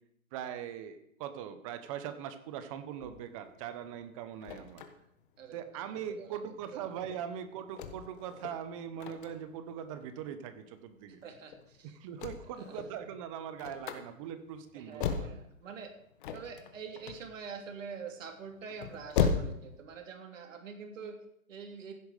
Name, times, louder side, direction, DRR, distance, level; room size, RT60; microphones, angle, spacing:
voice 1, 0.3-4.8 5.5-11.2 11.9-15.4, right 9 dB, 25° right, 10 dB, 0.9 m, -41 dB
sound 1, 3.0-19.8, left 6 dB, 40° left, 1.4 m, -37 dB
voice 2, 5.4-6.4 6.7-6.9 11.2-12.0 12.5-12.8 14.7-15.9 16.3-21.9, right 5 dB, 65° right, 4 dB, 3.1 m, -45 dB
15.5 x 7.9 x 5.0 m, 0.76 s
hypercardioid pair, 150°, 41 cm